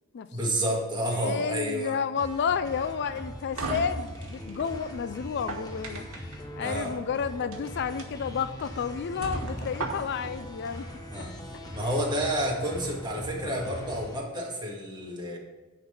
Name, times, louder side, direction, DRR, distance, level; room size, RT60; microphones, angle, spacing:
voice 1, 0.3-2.0 6.6-6.9 11.1-11.3 11.7-15.4, equal, 20° right, -2 dB, 1.8 m, -30 dB
voice 2, 1.1-6.1 6.6-10.9 11.2-11.3 11.8-11.9, left 6 dB, 50° left, 12 dB, 0.4 m, -31 dB
sound 1, 2.2-14.2, equal, 20° left, 0.9 m, -42 dB
sound 2, 2.5-14.2, equal, 5° right, 0.6 m, -46 dB
sound 3, 3.0-4.7 5.3-6.4 7.4-7.6 8.0-8.1 8.6-8.7 9.2-10.3, right 2 dB, 85° right, 1.5 m, -35 dB
10.0 x 3.9 x 7.0 m, 1.2 s
head